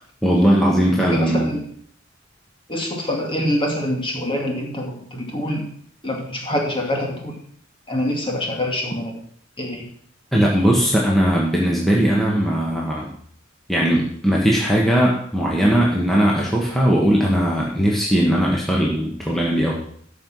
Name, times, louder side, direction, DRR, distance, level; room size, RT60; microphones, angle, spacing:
voice 1, 0.2-1.5 10.3-13.1 13.7-19.8, equal, ahead, -4 dB, 1.4 m, -19 dB
voice 2, 0.9-1.6 2.7-5.7 6.0-7.4 7.9-9.1 9.6-9.9, left 1 dB, 25° left, 0 dB, 2.4 m, -25 dB
13.0 x 5.6 x 6.2 m, 0.63 s
head